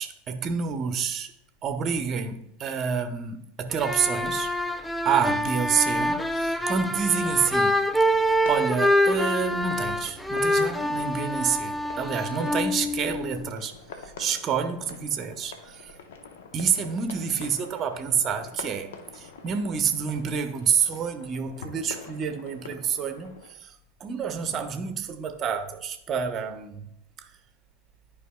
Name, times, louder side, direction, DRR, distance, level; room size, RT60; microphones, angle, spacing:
voice 1, 0.0-1.3 1.6-4.5 5.0-7.8 8.1-16.0 16.5-26.8 27.2-27.3, right 6 dB, 35° right, 0.8 m, -28 dB
sound 1, 3.7-13.5, equal, ahead, 0.4 m, -26 dB
sound 2, 7.0-23.5, left 5 dB, 65° left, 0.7 m, -46 dB
11.0 x 4.9 x 2.2 m
figure-of-eight pair, 80°, 0 cm